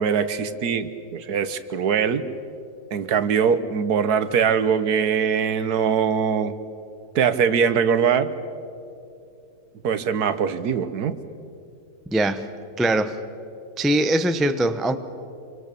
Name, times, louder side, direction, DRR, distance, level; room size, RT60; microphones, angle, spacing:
voice 1, 0.0-2.2 2.9-6.5 7.1-8.3 9.8-11.1, right 7 dB, 70° right, 12 dB, 1.5 m, -22 dB
voice 2, 12.1-12.5 12.8-13.2 13.8-15.0, right 1 dB, ahead, 10 dB, 0.5 m, -22 dB
26.5 x 24.5 x 6.9 m, 2.6 s
omnidirectional pair, 1.7 m